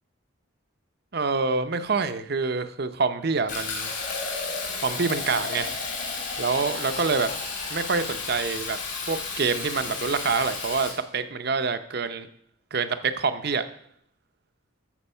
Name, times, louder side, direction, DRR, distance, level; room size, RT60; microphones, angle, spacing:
voice 1, 1.1-3.9 4.8-5.7 6.4-7.3 7.7-8.8 9.1-12.3 12.7-13.6, right 4 dB, 50° right, 11 dB, 0.7 m, -26 dB
Fill (with liquid), 3.5-10.9, left 4 dB, 60° left, 3.0 m, -32 dB
13.0 x 5.2 x 5.6 m, 0.68 s
head